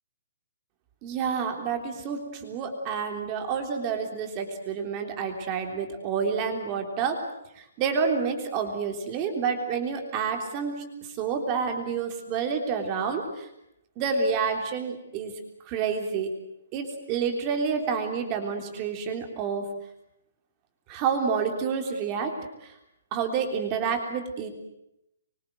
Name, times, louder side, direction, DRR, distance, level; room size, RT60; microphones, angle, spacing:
voice 1, 1.0-7.2 7.6-13.5 14.0-15.3 15.7-16.3 16.7-19.7 20.9-22.7 23.1-24.5, right 6 dB, 20° right, 4 dB, 3.5 m, -29 dB
26.0 x 24.0 x 7.9 m, 0.82 s
hypercardioid pair, 180°, 0 cm